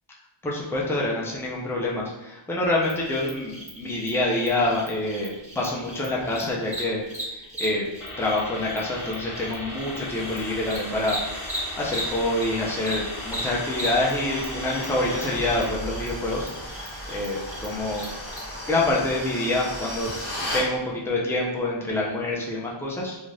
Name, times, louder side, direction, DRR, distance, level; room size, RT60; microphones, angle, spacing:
voice 1, 0.4-7.8 8.2-16.5 17.1-18.1 18.7-20.1 20.5-23.2, left 2 dB, 5° left, -3 dB, 0.5 m, -26 dB
Cricket, 2.8-12.5 12.8-18.4, equal, 15° right, 1.3 m, -38 dB
sound 1, 8.0-15.7, left 1 dB, 40° left, 1.0 m, -37 dB
sound 2, 9.8-20.7, equal, 65° left, 1.4 m, -36 dB
2.6 x 2.4 x 3.2 m, 0.97 s
wide cardioid pair, 70°, 49 cm